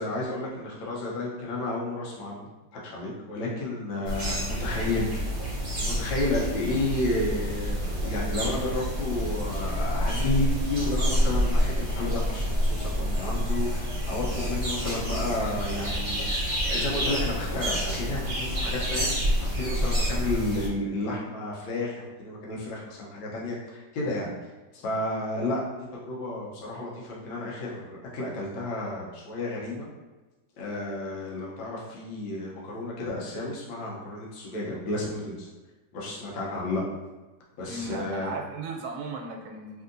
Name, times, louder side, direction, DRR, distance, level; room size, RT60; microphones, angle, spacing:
voice 1, 0.0-2.5 2.8-5.1 5.8-24.3 24.7-29.9 30.6-35.5 35.9-36.8 37.6-38.3, left 2 dB, 80° left, -4 dB, 1.6 m, -32 dB
sound 1, 4.0-20.7, equal, 40° right, 0.8 m, -28 dB
voice 2, 37.6-39.8, right 3 dB, 85° right, 1 dB, 1.3 m, -36 dB
3.4 x 2.6 x 2.5 m, 1.2 s
omnidirectional pair, 2.1 m